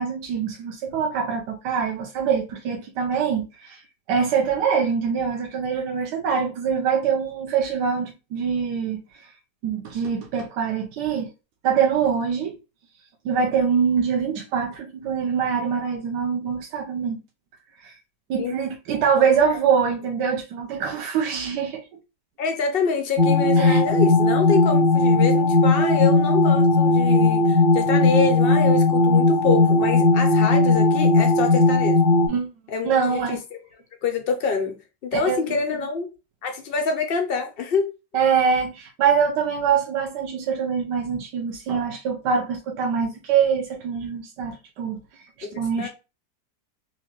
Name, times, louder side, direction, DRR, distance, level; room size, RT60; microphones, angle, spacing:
voice 1, 0.0-3.8 4.1-9.0 9.6-11.3 11.6-12.6 13.2-17.2 17.8-17.9 18.3-21.8 23.6-23.8 32.3-32.5 32.8-33.4 35.1-35.6 38.1-45.0 45.4-45.9, right 6 dB, 80° right, 1.3 m, -24 dB
voice 2, 22.4-32.0 32.7-33.6 34.0-36.1 36.4-37.9 45.4-45.9, left 5 dB, 80° left, 0.5 m, -26 dB
sound 1, 23.2-32.3, left 2 dB, 35° right, 0.4 m, -17 dB
4.2 x 2.4 x 3.0 m
omnidirectional pair, 1.8 m